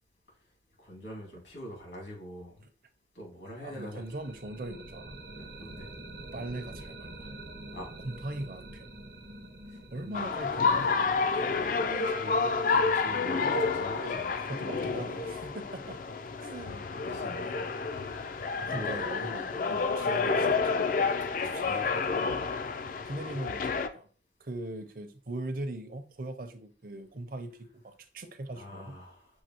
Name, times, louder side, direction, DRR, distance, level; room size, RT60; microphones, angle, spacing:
voice 1, 0.8-2.5 3.1-4.0 5.3-5.9 7.7-7.9 10.0-10.2 11.2-14.4 15.8-15.9 17.0-17.6 18.6-19.0 19.7-19.9 21.3-21.9 28.5-29.3, equal, 80° left, -2 dB, 2.3 m, -44 dB
voice 2, 3.6-5.2 6.3-7.3 8.0-8.9 9.9-10.9 14.5-16.0 16.4-16.9 18.6-20.8 21.4-22.4 23.0-24.1 24.4-29.0, right 2 dB, 50° right, 8 dB, 0.6 m, -40 dB
sound 1, 3.6-13.4, right 1 dB, 70° right, 1.0 m, -47 dB
sound 2, 10.1-23.9, left 4 dB, 45° left, 0.3 m, -29 dB
6.4 x 2.7 x 2.9 m, 0.40 s
head